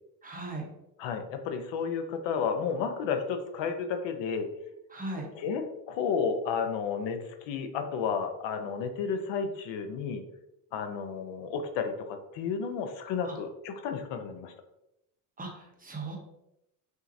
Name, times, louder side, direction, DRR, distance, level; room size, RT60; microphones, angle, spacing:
voice 1, 0.2-0.7 4.9-5.3 13.2-13.3 15.4-16.2, right 2 dB, 20° right, 0 dB, 0.9 m, -38 dB
voice 2, 1.0-4.5 5.3-10.2 10.7-14.5, left 6 dB, 75° left, 6 dB, 0.7 m, -32 dB
5.7 x 2.8 x 2.6 m, 0.85 s
cardioid pair, 120°, 45 cm